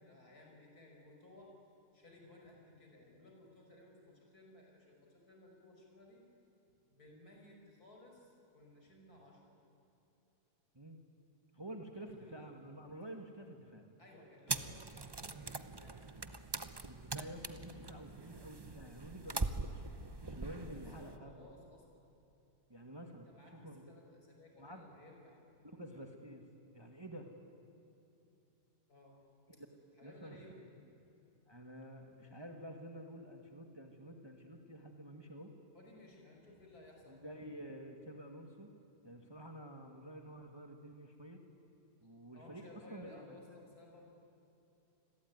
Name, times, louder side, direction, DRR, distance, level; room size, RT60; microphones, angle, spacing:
voice 1, 0.0-1.5 1.9-6.2 6.9-9.6 12.0-12.5 14.0-16.0 20.5-22.0 23.0-25.4 28.9-29.2 29.5-29.6 30.0-30.6 35.7-37.3 42.3-44.2, left 2 dB, 60° left, 0 dB, 6.3 m, -58 dB
voice 2, 11.5-13.9 16.9-19.9 20.3-21.5 22.7-23.9 24.5-24.8 25.6-26.5 26.7-27.3 30.0-30.4 31.5-35.5 37.1-38.7 39.0-41.4 42.0-42.6 42.9-43.6, right 1 dB, 15° right, 4 dB, 1.8 m, -50 dB
sound 1, 14.5-21.2, right 3 dB, 30° right, 0.4 m, -42 dB
28.5 x 21.5 x 9.6 m, 2.9 s
omnidirectional pair, 1.8 m